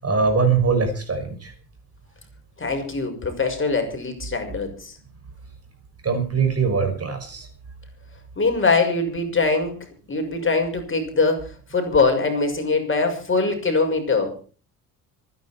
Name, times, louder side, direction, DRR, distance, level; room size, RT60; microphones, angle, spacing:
voice 1, 0.0-1.5 6.0-7.5, right 5 dB, 35° right, 7 dB, 5.7 m, -22 dB
voice 2, 2.6-4.9 8.4-9.7 10.1-14.4, left 3 dB, 30° left, 5 dB, 6.2 m, -22 dB
26.0 x 10.5 x 4.5 m, 0.39 s
supercardioid pair, 70°, 42 cm